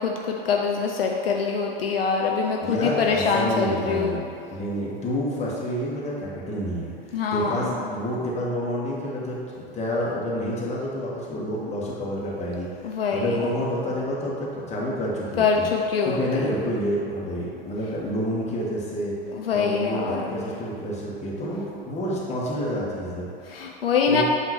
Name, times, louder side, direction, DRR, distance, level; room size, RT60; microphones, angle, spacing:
voice 1, 0.0-4.2 7.1-7.7 12.8-13.4 15.4-16.5 19.3-20.5 23.5-24.2, left 5 dB, 75° left, 0 dB, 0.6 m, -24 dB
voice 2, 2.6-12.7 13.1-15.7 16.0-19.2 19.5-23.3 24.1-24.2, equal, 20° left, -5 dB, 1.4 m, -28 dB
7.8 x 2.9 x 4.5 m, 2.6 s
figure-of-eight pair, 80°, 30 cm